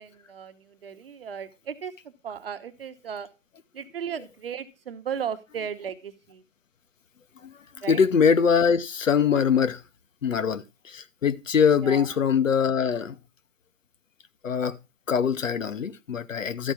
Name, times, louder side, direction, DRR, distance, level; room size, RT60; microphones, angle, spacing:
voice 1, 0.0-1.9 2.2-3.3 3.7-6.4 7.8-8.0 11.8-12.1, right 7 dB, 45° right, 1.1 m, -35 dB
voice 2, 7.9-9.8 10.2-13.2 14.4-14.8 15.1-16.7, left 6 dB, 70° left, 1.0 m, -23 dB
12.5 x 4.5 x 5.8 m
figure-of-eight pair, 145°, 40 cm